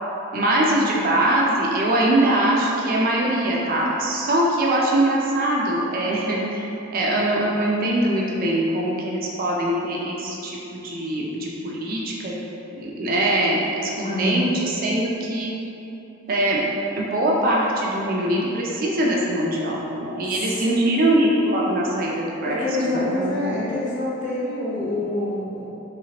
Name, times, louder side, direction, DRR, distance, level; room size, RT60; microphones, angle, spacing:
voice 1, 0.3-6.7 6.9-12.4 12.7-15.5 16.3-16.6 17.0-23.6, right 1 dB, 45° right, -3 dB, 0.4 m, -22 dB
voice 2, 14.0-14.4 20.3-21.4 22.4-25.6, left 1 dB, 40° left, -9 dB, 0.8 m, -26 dB
3.2 x 2.9 x 2.8 m, 2.9 s
head